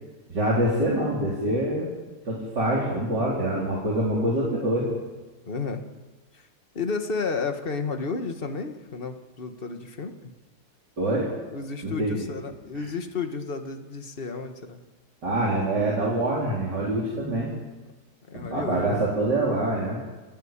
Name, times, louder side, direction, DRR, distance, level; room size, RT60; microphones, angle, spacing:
voice 1, 0.3-1.9 2.2-4.9 11.0-11.3 11.8-12.3 15.2-17.5 18.3-20.0, right 1 dB, 85° right, -5 dB, 4.7 m, -25 dB
voice 2, 5.4-5.8 6.3-6.4 6.7-10.3 11.5-14.8 18.2-19.0, left 4 dB, 35° left, 6 dB, 1.8 m, -32 dB
29.5 x 11.5 x 8.9 m, 1.2 s
omnidirectional pair, 1.8 m